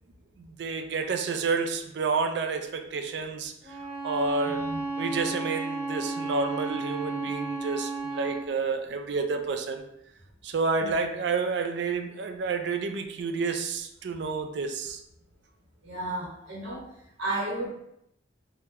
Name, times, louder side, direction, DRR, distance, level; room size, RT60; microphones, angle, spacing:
voice 1, 0.4-3.8 4.0-4.7 5.0-9.8 10.4-15.0, right 4 dB, 60° right, 6 dB, 0.4 m, -30 dB
Bowed string instrument, 3.6-8.5, right 3 dB, 40° right, 0.9 m, -33 dB
voice 2, 4.5-4.8 10.8-10.9 15.8-17.7, right 1 dB, 75° right, -5 dB, 0.9 m, -33 dB
2.9 x 2.1 x 3.5 m, 0.76 s
head